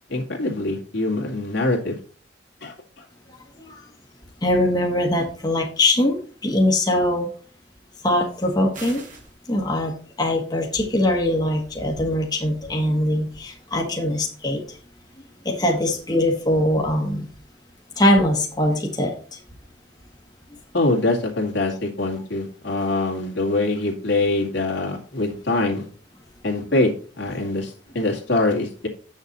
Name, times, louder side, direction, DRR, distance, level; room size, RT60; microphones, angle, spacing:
voice 1, 0.1-2.0 2.6-3.1 20.7-25.9 26.4-26.9 27.2-28.9, left 2 dB, 75° left, 0 dB, 2.2 m, -24 dB
voice 2, 4.4-7.3 8.0-9.0 9.5-14.6 15.4-17.3 18.0-19.1, left 1 dB, 20° left, 0 dB, 1.4 m, -22 dB
sound 1, 8.7-9.3, right 3 dB, 45° right, 2.2 m, -39 dB
8.3 x 6.5 x 4.1 m, 0.40 s
head